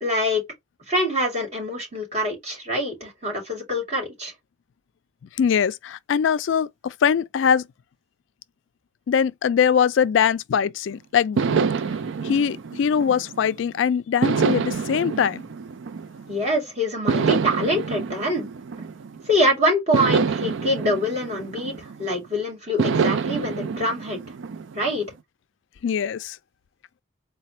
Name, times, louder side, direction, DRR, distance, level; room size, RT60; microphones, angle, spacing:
voice 1, 0.0-0.4 0.9-4.3 16.3-18.5 19.3-24.2 24.7-25.1, equal, 35° right, 2.3 m, -25 dB
voice 2, 5.4-7.7 9.1-11.4 12.2-15.4 25.8-26.4, left 7 dB, 75° left, 0.3 m, -22 dB
sound 1, 11.4-13.6 14.2-16.5 17.1-19.3 19.9-22.2 22.8-25.0, right 5 dB, 75° right, 0.4 m, -26 dB
4.1 x 2.2 x 4.1 m
head